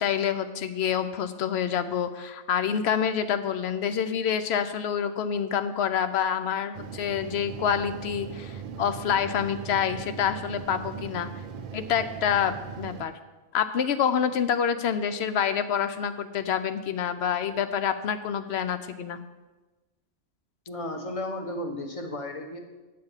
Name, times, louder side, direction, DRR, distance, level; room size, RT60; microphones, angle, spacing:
voice 1, 0.0-11.3 11.7-13.1 13.5-19.2, left 8 dB, 65° left, 11 dB, 0.8 m, -27 dB
sound 1, 6.7-13.0, right 6 dB, 55° right, 0.6 m, -39 dB
voice 2, 20.7-22.6, left 1 dB, 30° left, 4 dB, 1.0 m, -34 dB
9.0 x 6.7 x 5.6 m, 1.2 s
omnidirectional pair, 1.2 m